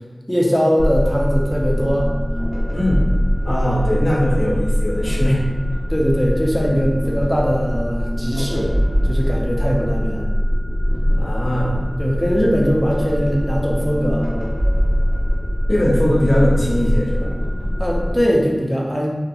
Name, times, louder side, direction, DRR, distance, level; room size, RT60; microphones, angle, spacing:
voice 1, 0.3-2.1 5.9-8.7 9.1-10.3 12.0-14.3 17.8-19.1, equal, 5° left, -3 dB, 0.6 m, -20 dB
sound 1, 0.8-18.2, equal, 45° right, 0.9 m, -21 dB
voice 2, 2.7-3.1 3.4-5.4 11.2-11.8 15.7-17.3, equal, 50° left, -4 dB, 0.6 m, -20 dB
2.6 x 2.3 x 2.5 m, 1.2 s
wide cardioid pair, 45°, 0 cm